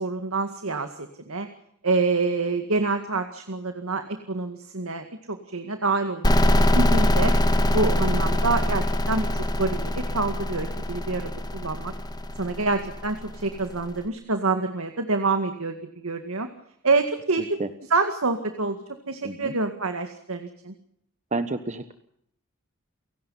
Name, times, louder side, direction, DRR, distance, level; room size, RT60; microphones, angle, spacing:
voice 1, 0.0-1.5 1.8-7.3 7.7-11.9 12.4-15.8 16.0-16.5 16.8-17.6 17.9-18.8 19.1-20.7, right 3 dB, 75° right, 7 dB, 2.0 m, -27 dB
sound 1, 6.2-13.8, left 1 dB, 20° left, 1.6 m, -23 dB
voice 2, 21.3-21.9, right 2 dB, 35° right, 9 dB, 1.2 m, -29 dB
30.0 x 17.5 x 5.6 m, 0.72 s
head